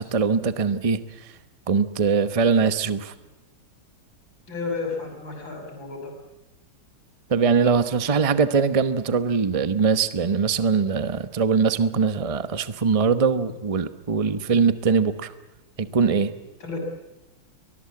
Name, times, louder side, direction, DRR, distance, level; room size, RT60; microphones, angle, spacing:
voice 1, 0.0-1.3 1.7-3.1 7.3-15.3 15.8-16.3, right 5 dB, 70° right, 12 dB, 0.3 m, -22 dB
voice 2, 4.5-6.1 16.6-16.8, left 4 dB, 60° left, 2 dB, 6.8 m, -32 dB
23.5 x 21.0 x 8.5 m, 1.0 s
omnidirectional pair, 2.4 m